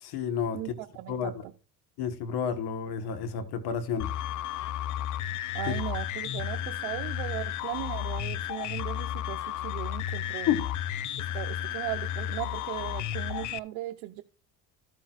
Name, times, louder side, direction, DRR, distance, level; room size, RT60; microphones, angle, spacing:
voice 1, 0.0-0.6 1.1-1.4 2.0-4.1 5.7-5.8 10.5-10.7, left 8 dB, 65° left, 1.5 m, -30 dB
voice 2, 0.5-1.5 5.5-10.5 11.3-14.2, right 18 dB, 75° right, 0.8 m, -37 dB
sound 1, 4.0-13.6, left 11 dB, 45° left, 0.6 m, -33 dB
14.0 x 7.6 x 2.4 m
supercardioid pair, 80°, 42 cm